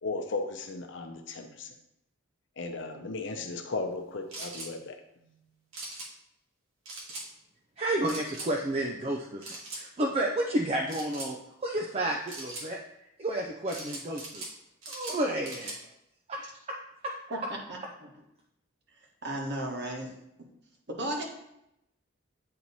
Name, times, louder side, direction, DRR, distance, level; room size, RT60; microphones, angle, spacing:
voice 1, 0.0-1.7 2.6-5.0, left 3 dB, 60° left, 5 dB, 0.7 m, -36 dB
sound 1, 4.3-4.7 5.7-6.1 6.9-7.3 8.0-8.5 9.4-9.8 10.9-11.3 12.3-12.7 13.7-14.5 14.8-15.8, right 2 dB, 75° right, 1.4 m, -40 dB
voice 2, 7.8-12.8 13.2-14.4 14.9-15.8 16.3-16.8 17.0-17.1, right 1 dB, 30° right, 0 dB, 0.4 m, -31 dB
voice 3, 17.7-18.1 19.2-20.1 20.9-21.2, right 1 dB, 55° right, 0 dB, 1.3 m, -34 dB
8.6 x 3.0 x 4.0 m, 0.83 s
head